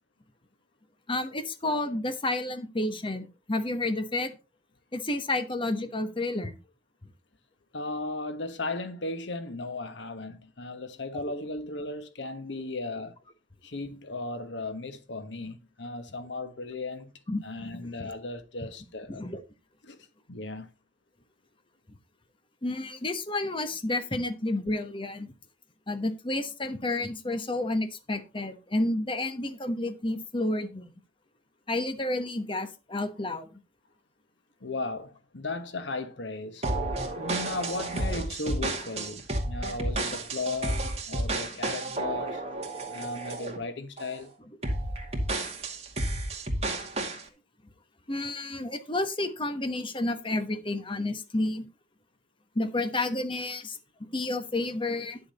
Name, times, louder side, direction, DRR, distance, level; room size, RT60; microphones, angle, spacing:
voice 1, 1.1-4.3 4.9-6.6 11.2-11.3 17.3-17.7 18.0-18.1 19.1-19.4 22.6-25.3 25.9-30.9 31.7-33.5 48.1-51.7 52.5-53.8 54.1-55.2, left 2 dB, 30° left, 1.2 m, -30 dB
voice 2, 7.7-13.1 13.6-17.1 17.4-19.3 19.8-20.0 20.3-20.7 34.6-36.6 37.2-42.4 42.9-44.3, left 2 dB, 90° left, 1.3 m, -36 dB
sound 1, 36.6-43.6 44.0-44.2 44.6-47.2, right 2 dB, 35° right, 2.3 m, -31 dB
10.5 x 6.9 x 4.2 m
head